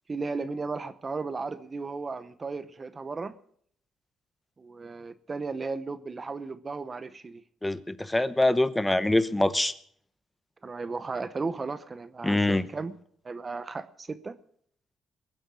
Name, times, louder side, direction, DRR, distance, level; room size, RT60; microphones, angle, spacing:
voice 1, 0.1-3.3 4.6-7.4 10.6-12.9 13.2-14.3, right 4 dB, 30° right, 14 dB, 0.8 m, -35 dB
voice 2, 7.6-9.7 12.2-12.7, left 1 dB, 10° left, 15 dB, 0.9 m, -24 dB
22.0 x 7.8 x 6.2 m, 0.63 s
cardioid pair, 90°, 0 cm